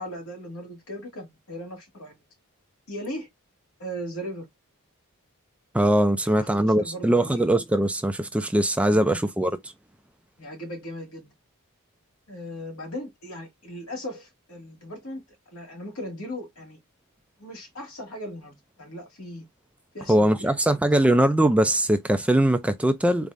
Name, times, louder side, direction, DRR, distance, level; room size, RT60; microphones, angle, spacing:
voice 1, 0.0-2.2 2.9-3.3 3.8-4.5 6.2-7.4 8.8-9.2 10.4-11.3 12.3-15.2 15.5-16.8 17.4-19.4 19.9-20.8, equal, 70° left, 2.1 m, -38 dB
voice 2, 5.7-9.5 20.1-23.3, right 1 dB, 5° right, 0.4 m, -21 dB
4.1 x 3.3 x 2.5 m
head